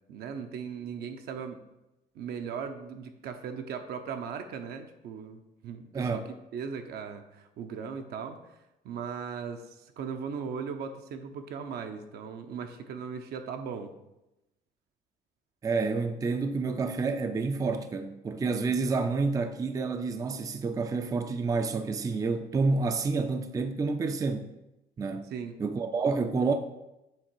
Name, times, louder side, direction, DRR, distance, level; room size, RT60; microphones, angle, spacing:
voice 1, 0.1-1.6 2.1-6.2 6.5-8.4 8.8-9.6 10.0-13.9 25.3-25.6, right 6 dB, 70° right, 0.7 m, -38 dB
voice 2, 5.9-6.3 15.6-24.5 25.0-25.3 25.6-26.5, right 4 dB, 20° right, 0.4 m, -29 dB
7.5 x 3.3 x 4.6 m
cardioid pair, 110°, 17 cm